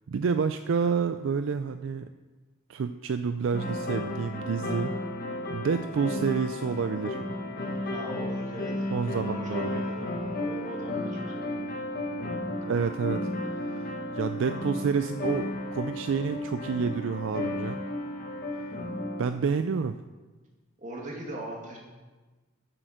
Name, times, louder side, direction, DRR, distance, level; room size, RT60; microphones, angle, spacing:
voice 1, 0.1-2.1 2.7-5.0 5.5-7.2 8.9-9.8 12.6-17.8 19.2-20.0, right 5 dB, 65° right, 9 dB, 0.4 m, -29 dB
sound 1, 3.5-19.3, left 1 dB, 45° left, 1.6 m, -33 dB
voice 2, 7.9-11.7 20.8-21.8, right 1 dB, 35° right, -1 dB, 2.2 m, -40 dB
9.3 x 7.6 x 6.5 m, 1.3 s
head